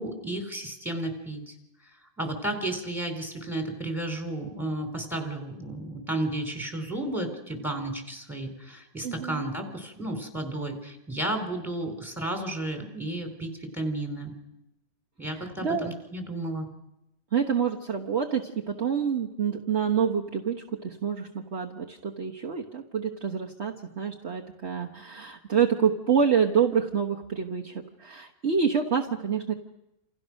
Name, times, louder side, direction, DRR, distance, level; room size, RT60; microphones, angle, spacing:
voice 1, 0.0-1.5 2.2-14.3 15.2-16.7, right 1 dB, ahead, 4 dB, 4.5 m, -33 dB
voice 2, 9.0-9.4 15.2-15.9 17.3-29.5, right 7 dB, 45° right, 1 dB, 1.5 m, -27 dB
29.0 x 28.0 x 6.4 m, 0.91 s
omnidirectional pair, 1.6 m